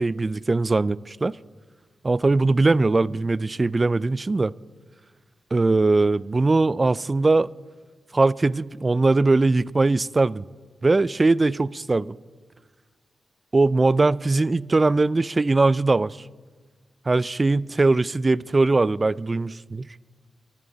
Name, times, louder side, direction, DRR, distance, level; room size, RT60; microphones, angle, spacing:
voice 1, 0.0-1.4 2.0-4.5 5.5-7.5 8.1-10.4 10.8-12.2 13.5-16.2 17.1-19.9, right 3 dB, 35° right, 0.3 m, -21 dB
23.0 x 10.5 x 4.0 m
cardioid pair, 55°, 0 cm